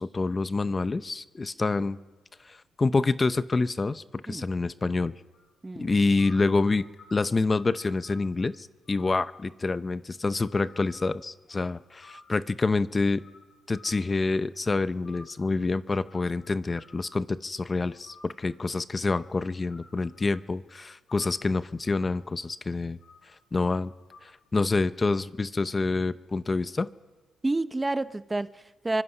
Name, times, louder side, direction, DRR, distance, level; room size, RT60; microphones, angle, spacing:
voice 1, 0.0-2.0 2.4-5.1 5.8-13.2 13.7-23.0 23.5-23.9 24.2-26.9, left 3 dB, 25° left, 14 dB, 0.7 m, -27 dB
sound 1, 5.3-5.5 6.2-8.6 8.8-9.7 10.1-12.6 13.1-14.5 15.0-17.4 17.8-20.5 21.1-22.5 23.0-23.6 23.8-24.2, left 3 dB, 60° left, 7.7 m, -55 dB
voice 2, 27.4-29.0, right 2 dB, 15° right, 13 dB, 0.7 m, -29 dB
28.0 x 24.5 x 5.5 m, 1.2 s
cardioid pair, 90°, 0 cm